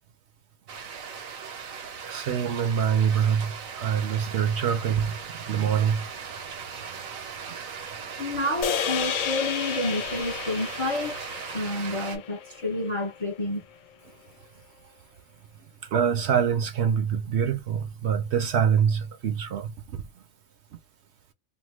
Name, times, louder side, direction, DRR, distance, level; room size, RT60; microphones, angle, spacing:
sound 1, 0.7-12.2, right 6 dB, 80° right, 1.3 m, -38 dB
voice 1, 2.0-5.2 5.5-6.0 15.9-19.7, right 8 dB, 60° right, 0.8 m, -25 dB
voice 2, 8.2-13.6, left 1 dB, 40° left, 0.5 m, -29 dB
sound 2, 8.6-13.0, left 9 dB, 80° left, 1.0 m, -32 dB
2.7 x 2.2 x 3.0 m
omnidirectional pair, 1.4 m